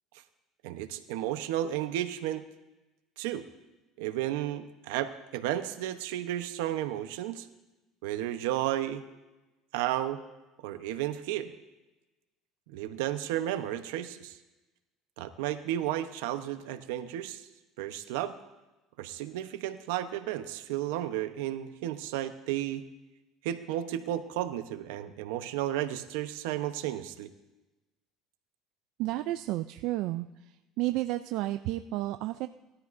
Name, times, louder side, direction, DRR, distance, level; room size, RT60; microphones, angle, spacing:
voice 1, 0.6-2.5 3.2-3.4 4.0-7.5 8.0-9.0 9.7-10.2 10.6-11.5 12.7-14.4 15.2-17.4 17.8-18.4 19.0-22.8 23.4-27.3, right 12 dB, 85° right, 10 dB, 0.9 m, -33 dB
voice 2, 29.0-30.3 30.8-32.5, right 16 dB, 70° right, 9 dB, 0.4 m, -31 dB
20.0 x 13.0 x 2.6 m, 1.1 s
supercardioid pair, 115°, 0 cm